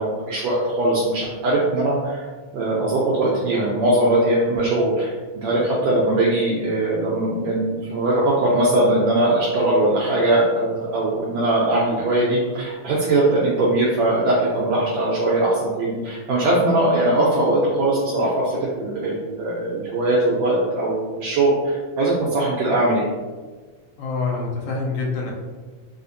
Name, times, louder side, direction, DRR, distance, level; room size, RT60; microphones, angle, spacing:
voice 1, 0.0-2.2 2.5-5.1 5.4-23.0, right 1 dB, 75° right, -6 dB, 1.7 m, -20 dB
voice 2, 24.0-25.3, left 4 dB, 80° left, -2 dB, 2.0 m, -26 dB
4.9 x 2.1 x 2.6 m, 1.4 s
omnidirectional pair, 3.4 m